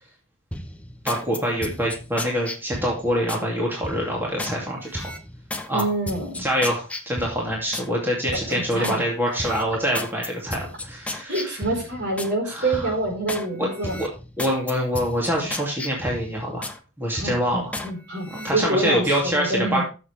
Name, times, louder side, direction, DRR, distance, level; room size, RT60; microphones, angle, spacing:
sound 1, 0.5-3.5 3.8-4.6 4.9-7.9 8.3-9.0 9.4-12.3 12.7-13.5 13.8-16.8 17.2-17.9 18.3-18.5, left 1 dB, 5° left, 0.9 m, -34 dB
voice 1, 1.0-5.1 5.7-5.9 6.4-11.6 12.5-12.9 13.5-14.1 14.4-16.7 17.0-17.8 18.4-19.8, equal, 10° right, -3 dB, 2.6 m, -25 dB
voice 2, 5.7-6.4 8.5-9.0 11.3-14.0 17.2-19.8, right 2 dB, 55° right, 0 dB, 4.7 m, -27 dB
14.5 x 7.1 x 3.4 m, 0.32 s
head